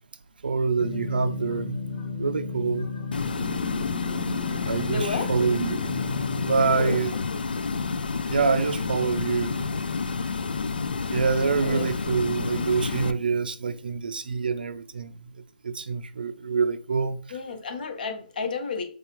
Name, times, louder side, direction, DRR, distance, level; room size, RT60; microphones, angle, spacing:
voice 1, 0.4-1.8 2.2-2.9 4.7-7.1 8.3-9.7 11.1-15.1 15.6-17.4, right 5 dB, 85° right, 0.5 m, -26 dB
sound 1, 0.8-7.0, left 4 dB, 35° left, 0.8 m, -34 dB
sound 2, 3.1-13.1, left 4 dB, 90° left, 0.3 m, -29 dB
voice 2, 4.9-5.3 6.6-7.0 7.3-7.4 11.6-11.8 17.3-18.8, left 4 dB, 70° left, 1.1 m, -31 dB
4.6 x 2.4 x 3.0 m
hypercardioid pair, 150°, 5 cm